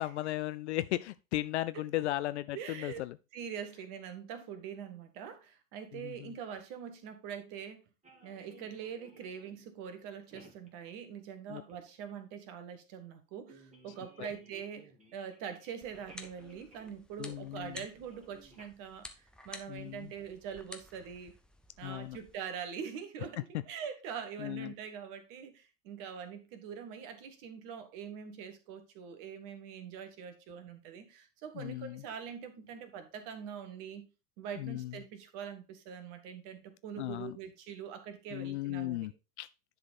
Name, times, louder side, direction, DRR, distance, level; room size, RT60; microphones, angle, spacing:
voice 1, 0.0-3.2 5.9-6.3 11.5-11.6 14.2-14.3 17.2-17.8 19.7-20.1 21.8-22.2 24.4-24.7 31.5-32.0 34.6-34.9 37.0-37.4 38.3-39.1 39.4-39.5, left 16 dB, 50° left, 0.4 m, -36 dB
voice 2, 2.5-3.0 3.3-7.8 8.2-21.3 21.8-34.0 34.4-39.1, right 7 dB, 45° right, 1.5 m, -44 dB
sound 1, 8.0-9.7 10.2-10.7 11.7-11.8 12.3-12.4 12.7-12.8 13.5-17.0 17.3-17.7 17.9-18.7, right 2 dB, 15° right, 2.1 m, -57 dB
sound 2, 15.8-22.3, left 2 dB, ahead, 0.6 m, -52 dB
10.0 x 4.0 x 4.2 m
figure-of-eight pair, 80°, 47 cm